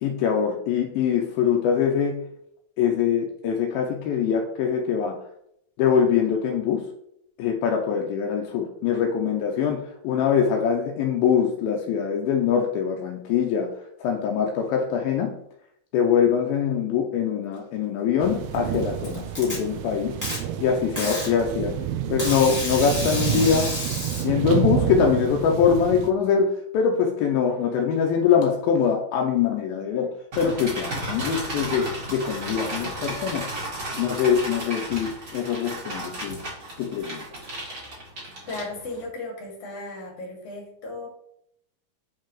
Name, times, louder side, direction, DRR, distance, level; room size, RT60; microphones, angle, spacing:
voice 1, 0.0-2.2 2.8-5.2 5.8-6.9 7.4-13.7 14.0-15.3 15.9-20.1 20.6-21.8 22.1-23.7 24.2-33.5 34.0-36.4 36.8-37.2, left 7 dB, 80° left, 1 dB, 2.3 m, -23 dB
sound 1, 18.2-26.1, right 11 dB, 85° right, 2.5 m, -29 dB
Packing tape duct tape, 18.5-19.6 20.2-20.4 21.0-21.3 22.2-24.2, left 1 dB, 5° left, 1.3 m, -30 dB
sound 2, 30.3-39.0, right 1 dB, 40° right, 1.8 m, -34 dB
voice 2, 38.5-41.1, left 2 dB, 45° left, -1 dB, 2.6 m, -35 dB
7.5 x 4.7 x 3.0 m, 0.74 s
omnidirectional pair, 4.5 m